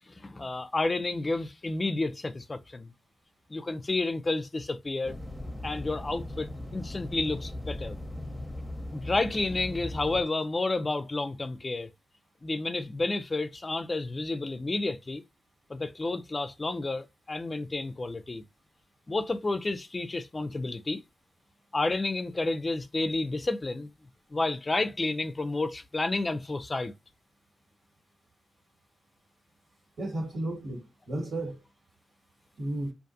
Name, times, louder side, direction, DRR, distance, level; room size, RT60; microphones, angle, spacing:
voice 1, 0.1-2.9 3.5-5.1 5.6-8.0 8.9-11.9 12.4-15.2 15.7-18.4 19.1-21.0 21.7-23.9 24.3-26.9, left 2 dB, 40° left, 0.4 m, -30 dB
sound 1, 5.0-10.2, left 1 dB, 15° left, 0.7 m, -38 dB
voice 2, 30.0-31.6 32.6-32.9, right 1 dB, 80° right, 1.7 m, -33 dB
2.5 x 2.3 x 2.6 m
supercardioid pair, 40°, 0 cm